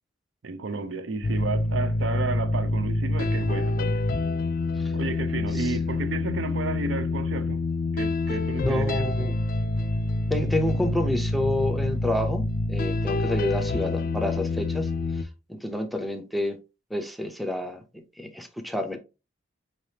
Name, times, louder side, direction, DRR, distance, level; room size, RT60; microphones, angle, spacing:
voice 1, 0.4-4.0 4.9-7.6 7.9-9.1, right 3 dB, 80° right, 0.6 m, -32 dB
sound 1, 1.2-15.2, left 2 dB, 50° left, 0.4 m, -27 dB
voice 2, 8.6-9.4 10.3-14.9 15.5-16.6 16.9-17.8 18.2-19.0, left 1 dB, ahead, 0.5 m, -29 dB
4.9 x 3.3 x 2.7 m
head